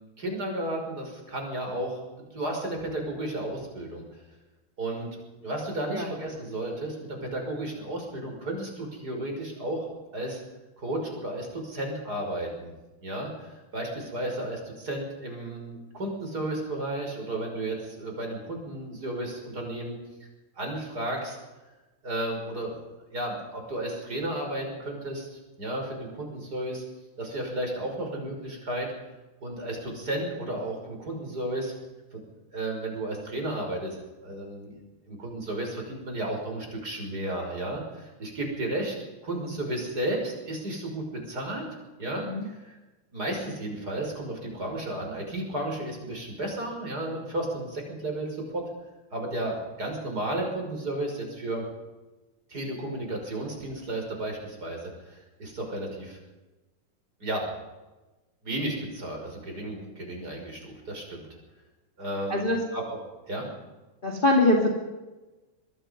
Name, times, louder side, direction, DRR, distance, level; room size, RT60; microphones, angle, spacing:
voice 1, 0.2-4.0 4.8-5.1 5.4-9.9 10.1-10.4 10.8-12.7 13.0-20.0 20.6-21.4 22.0-22.8 23.1-26.8 27.2-28.9 29.4-31.7 32.1-32.2 32.5-34.0 34.2-34.8 35.1-39.0 39.2-41.6 42.0-42.7 43.1-48.6 49.1-51.6 52.5-56.2 57.2-57.5 58.4-61.3 62.0-62.4 62.7-63.0 63.3-63.5, right 1 dB, 30° right, 1 dB, 6.3 m, -33 dB
voice 2, 64.0-64.7, left 2 dB, 15° left, 0 dB, 2.5 m, -23 dB
24.5 x 21.5 x 5.4 m, 1.1 s
omnidirectional pair, 3.5 m